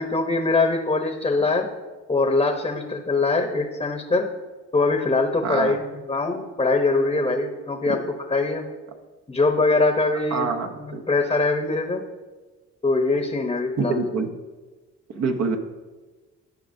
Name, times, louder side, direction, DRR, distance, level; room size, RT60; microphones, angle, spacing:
voice 1, 0.0-1.7 2.1-4.3 4.7-5.8 6.1-8.0 8.3-8.7 9.3-10.5 11.1-12.0 12.8-14.0, left 3 dB, 20° left, 4 dB, 0.8 m, -22 dB
voice 2, 5.4-5.8 7.9-8.0 10.3-11.0 13.8-14.3 15.1-15.6, right 4 dB, 60° right, 5 dB, 0.9 m, -26 dB
13.5 x 5.0 x 2.7 m, 1.3 s
cardioid pair, 90°, 30 cm